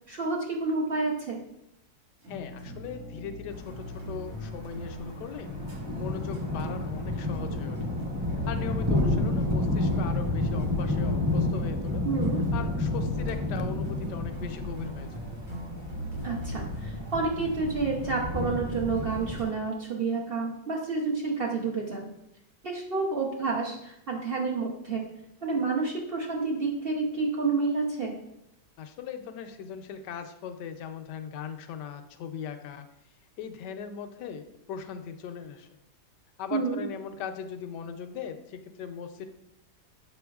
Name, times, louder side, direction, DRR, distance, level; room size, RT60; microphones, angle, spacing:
voice 1, 0.1-1.4 12.0-12.4 16.2-22.1 22.6-25.1 25.4-28.1 36.5-36.8, right 4 dB, 65° right, -2 dB, 0.5 m, -29 dB
sound 1, 2.2-19.4, equal, 85° right, 3.1 m, -41 dB
voice 2, 2.3-5.5 5.9-7.8 8.4-12.0 12.5-15.1 28.8-32.9 33.4-35.7 36.4-39.3, left 7 dB, 75° left, 8 dB, 1.1 m, -39 dB
sound 2, 3.5-19.4, left 2 dB, 20° right, 0.5 m, -31 dB
7.6 x 5.7 x 2.3 m, 0.82 s
omnidirectional pair, 2.1 m